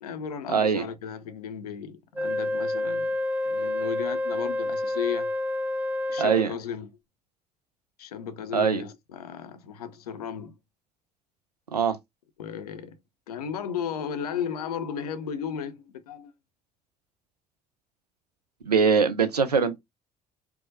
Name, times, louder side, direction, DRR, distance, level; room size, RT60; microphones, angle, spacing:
voice 1, 0.0-3.1 3.4-5.3 6.1-6.9 8.0-10.5 12.4-13.0 13.3-16.3, left 8 dB, 75° left, 0.5 m, -34 dB
voice 2, 0.5-0.9 6.2-6.5 8.5-8.8 11.7-12.0 18.7-19.8, right 6 dB, 90° right, 0.5 m, -22 dB
Wind instrument woodwind instrument, 2.1-6.5, left 2 dB, 10° right, 0.4 m, -28 dB
4.5 x 2.1 x 2.6 m
figure-of-eight pair, 50°, 20 cm